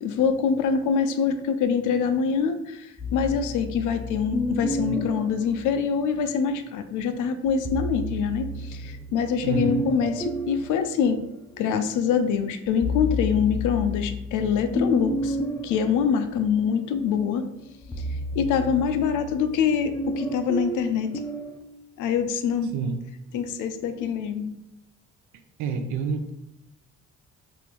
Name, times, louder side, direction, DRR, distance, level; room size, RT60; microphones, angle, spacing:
voice 1, 0.0-11.2 11.6-15.4 15.6-17.4 18.4-21.1 22.0-22.7 23.3-24.5, left 6 dB, 85° left, 9 dB, 0.4 m, -25 dB
sound 1, 3.0-6.5 7.5-11.9 12.3-21.6, left 1 dB, 10° left, 0.4 m, -32 dB
voice 2, 9.4-9.8 22.7-23.0 25.6-26.3, right 5 dB, 75° right, 7 dB, 0.5 m, -28 dB
3.4 x 2.6 x 2.9 m, 0.86 s
cardioid pair, 90°, 30 cm